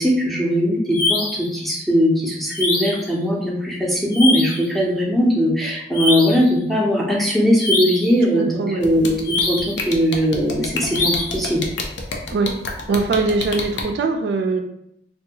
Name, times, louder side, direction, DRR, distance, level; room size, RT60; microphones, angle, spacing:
voice 1, 0.0-11.7, equal, ahead, -4 dB, 0.5 m, -19 dB
sound 1, 0.9-1.5 2.5-3.1 4.1-4.7 5.9-6.5 7.6-8.2 9.3-9.8 10.9-11.5, left 2 dB, 60° left, 0.8 m, -23 dB
voice 2, 8.4-8.8 12.3-12.6 12.9-14.6, right 3 dB, 65° right, 5 dB, 0.3 m, -22 dB
sound 2, 8.8-13.8, left 3 dB, 90° left, 0.5 m, -27 dB
2.7 x 2.2 x 2.7 m, 0.77 s
head